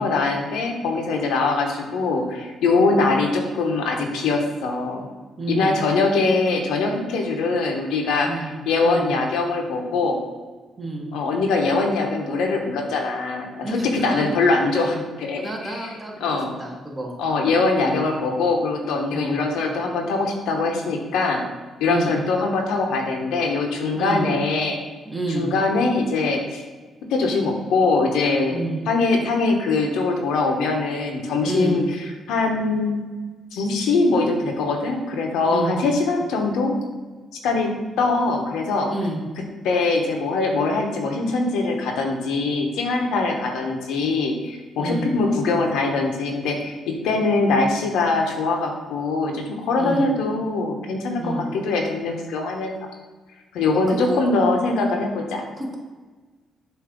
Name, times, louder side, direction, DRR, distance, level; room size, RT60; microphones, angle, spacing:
voice 1, 0.0-5.1 5.5-10.2 11.1-15.9 16.2-16.5 17.2-21.4 21.8-24.8 25.3-26.6 27.1-28.6 28.9-31.8 32.3-33.0 33.5-36.8 37.4-38.9 39.6-52.7 53.5-55.4, left 3 dB, 90° left, 2 dB, 1.0 m, -22 dB
voice 2, 5.4-5.8 8.2-9.1 10.8-11.1 13.6-14.3 14.7-15.0 15.4-17.1 17.8-18.1 19.1-19.4 21.9-22.2 23.9-24.3 25.0-25.5 28.5-28.8 31.4-31.8 35.5-35.8 38.9-39.2 44.8-45.1 49.7-50.1 51.2-51.5 53.9-54.2 55.5-55.8, right 2 dB, 25° right, -1 dB, 1.5 m, -29 dB
7.1 x 2.8 x 5.2 m, 1.3 s
cardioid pair, 90°, 0 cm